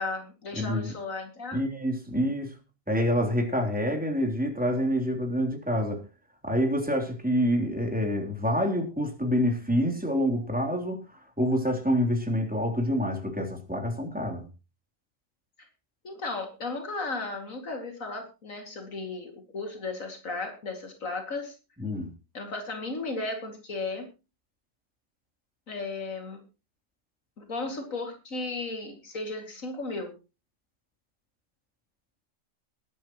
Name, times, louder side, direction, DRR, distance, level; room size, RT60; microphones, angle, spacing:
voice 1, 0.0-1.6 16.0-21.5 22.3-24.1 25.7-26.4 27.4-30.1, left 3 dB, 85° left, 2.9 m, -35 dB
voice 2, 0.5-1.0 1.5-2.6 2.9-6.0 6.4-11.0 11.4-14.5 21.8-22.1, equal, 5° right, 3.4 m, -27 dB
21.5 x 11.0 x 3.1 m
omnidirectional pair, 1.4 m